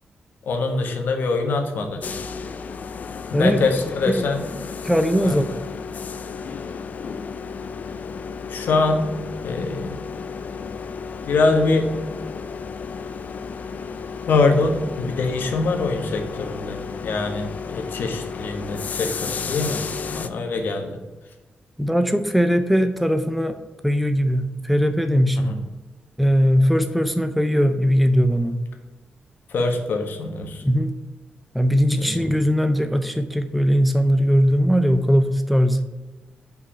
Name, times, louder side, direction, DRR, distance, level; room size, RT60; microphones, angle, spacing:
voice 1, 0.4-2.0 3.3-4.5 5.2-5.4 8.5-9.1 9.4-10.1 11.3-11.9 14.3-19.8 20.1-21.0 25.4-25.6 29.5-30.6 31.9-32.3, left 3 dB, 80° left, 4 dB, 1.3 m, -23 dB
sound 1, 2.0-20.3, left 5 dB, 55° left, 0.5 m, -33 dB
voice 2, 4.8-5.6 21.8-23.6 23.8-25.5 26.2-28.6 30.6-30.9 31.5-35.8, equal, ahead, 8 dB, 0.5 m, -19 dB
5.5 x 5.0 x 5.6 m, 1.2 s
wide cardioid pair, 145°, 3 cm